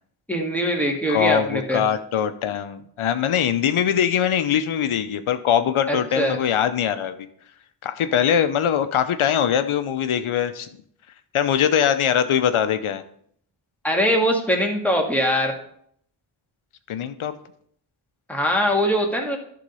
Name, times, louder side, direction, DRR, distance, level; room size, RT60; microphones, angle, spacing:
voice 1, 0.3-1.8 5.9-6.4 13.8-15.5 18.3-19.4, equal, 5° left, 0 dB, 1.9 m, -22 dB
voice 2, 1.1-7.1 7.8-10.7 11.3-13.0 16.9-17.3, left 9 dB, 85° left, 10 dB, 0.7 m, -22 dB
11.5 x 3.9 x 5.4 m, 0.66 s
cardioid pair, 50°, 48 cm